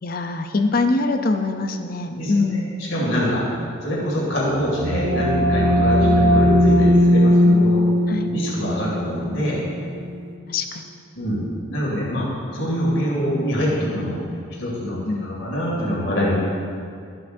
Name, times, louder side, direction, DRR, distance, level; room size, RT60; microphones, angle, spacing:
voice 1, 0.0-2.7 8.1-8.3 10.5-10.8 15.1-15.2, left 3 dB, 45° left, 7 dB, 0.5 m, -23 dB
voice 2, 2.1-3.5 3.8-7.9 8.3-9.6 11.2-12.3 12.5-14.2 14.6-16.4, equal, 70° left, -5 dB, 2.3 m, -24 dB
sound 1, 4.5-10.0, equal, 70° right, 0.7 m, -18 dB
13.0 x 8.1 x 2.6 m, 2.3 s
head